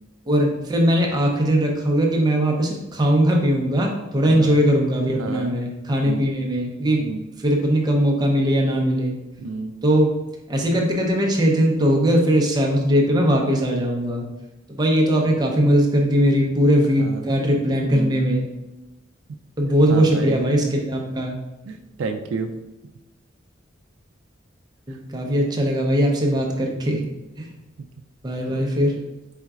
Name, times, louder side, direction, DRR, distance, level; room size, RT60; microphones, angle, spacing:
voice 1, 0.3-7.0 7.4-9.2 9.8-10.2 10.5-14.3 14.7-18.5 19.6-21.4 24.9-27.1 27.4-27.5 28.2-29.0, equal, 20° right, 0 dB, 0.6 m, -20 dB
voice 2, 4.2-4.6 5.1-5.5 6.0-6.3 7.0-7.2 9.4-9.7 17.0-17.2 17.9-18.3 19.9-20.4 21.7-22.6 28.5-28.6, right 4 dB, 70° right, 5 dB, 0.3 m, -30 dB
4.3 x 3.8 x 2.4 m, 1.0 s
head